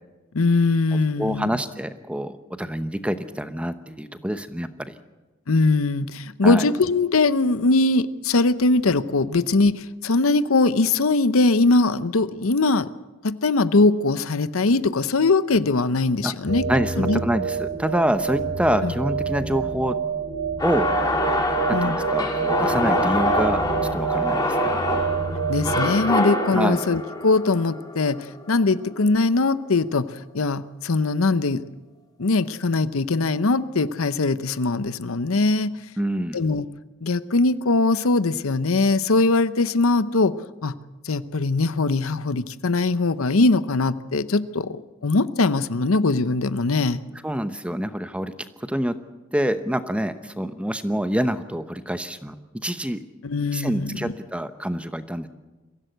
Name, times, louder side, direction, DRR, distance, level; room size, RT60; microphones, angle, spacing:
voice 1, 0.3-1.5 5.5-12.9 13.2-16.6 17.0-17.2 18.8-18.9 21.7-22.0 25.5-31.7 32.2-35.8 36.3-36.7 37.0-40.4 40.6-40.8 41.0-47.0 53.2-54.1, left 3 dB, 85° left, 14 dB, 0.8 m, -21 dB
voice 2, 1.2-4.9 6.4-6.7 16.2-16.3 16.7-20.0 20.6-20.9 21.7-23.6 23.9-24.7 26.5-26.8 36.0-36.4 47.2-48.3 48.6-48.9 49.3-53.0 53.5-55.3, equal, 5° right, 11 dB, 0.8 m, -26 dB
sound 1, 16.5-25.8, right 6 dB, 45° right, 1.8 m, -27 dB
sound 2, 20.6-28.8, left 2 dB, 20° left, 2.6 m, -25 dB
23.0 x 15.5 x 8.0 m, 1.1 s
head